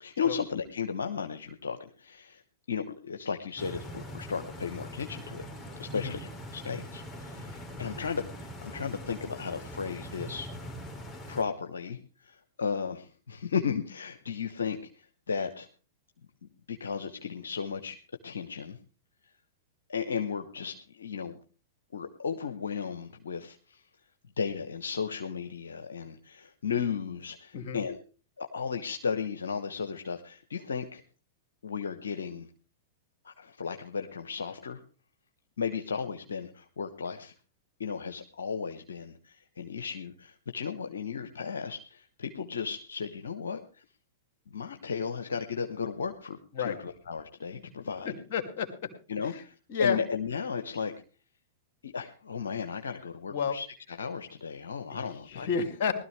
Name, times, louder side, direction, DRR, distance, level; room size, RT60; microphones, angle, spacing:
voice 1, 0.0-2.4 2.7-5.4 5.8-10.5 11.3-15.7 16.7-18.0 18.2-18.8 19.9-21.4 21.9-23.8 24.4-28.0 28.4-31.0 31.6-32.5 33.2-34.8 35.6-37.3 37.8-43.8 44.5-48.2 49.1-50.9 51.8-55.5, left 6 dB, 80° left, 6 dB, 1.0 m, -35 dB
Stream, 3.6-11.4, equal, 15° left, 2.8 m, -42 dB
voice 2, 48.0-48.9 49.2-49.4 49.7-50.0 53.3-53.6 54.9-55.0 55.3-55.9, left 6 dB, 55° left, 8 dB, 2.4 m, -31 dB
19.0 x 13.0 x 3.3 m, 0.36 s
hypercardioid pair, 105°, 0 cm